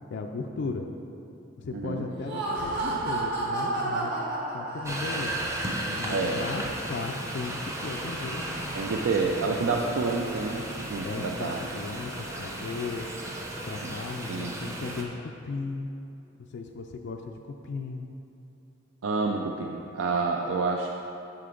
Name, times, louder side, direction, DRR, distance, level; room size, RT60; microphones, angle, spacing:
voice 1, 0.1-0.9 1.6-4.1 4.5-5.3 6.0-8.7 11.0-13.1 13.6-15.9 16.5-18.1, left 4 dB, 60° left, 3 dB, 0.3 m, -36 dB
voice 2, 1.7-2.0 6.1-6.5 8.7-11.7 13.8-14.0 14.3-14.5 19.0-20.9, right 4 dB, 70° right, 1 dB, 0.4 m, -28 dB
Laughter, 2.1-5.4, right 2 dB, 55° right, 1.4 m, -31 dB
sound 1, 4.8-15.0, right 1 dB, 15° right, 0.6 m, -35 dB
7.7 x 5.8 x 3.8 m, 2.7 s
head